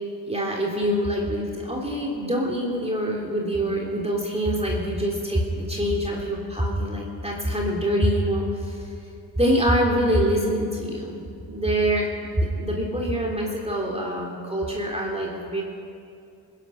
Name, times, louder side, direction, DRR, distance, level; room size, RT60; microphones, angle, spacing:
voice 1, 0.3-8.9 9.4-11.2 11.4-15.6, equal, 15° right, -2 dB, 3.2 m, -25 dB
20.5 x 11.0 x 6.5 m, 2.5 s
supercardioid pair, 50°, 45 cm